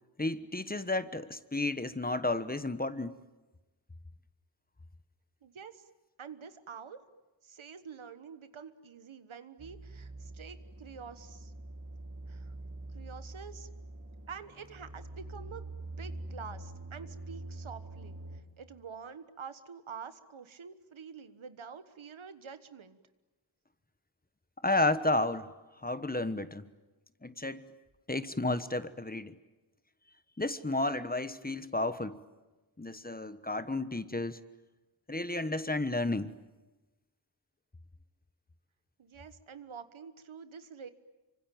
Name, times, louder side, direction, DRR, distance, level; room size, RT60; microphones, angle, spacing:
voice 1, 0.2-3.2 24.6-25.5 25.8-26.7 27.2-27.7 28.1-29.4 30.4-32.2 32.8-34.4 35.1-36.3, left 2 dB, 20° left, 12 dB, 1.2 m, -32 dB
voice 2, 5.4-5.9 6.2-7.0 7.4-11.5 12.3-12.5 12.9-13.7 14.3-23.0 39.0-40.9, right 6 dB, 90° right, 11 dB, 1.4 m, -47 dB
sound 1, 9.6-18.4, right 2 dB, 40° right, 3.3 m, -45 dB
26.5 x 25.0 x 9.2 m, 1.1 s
wide cardioid pair, 60°, 46 cm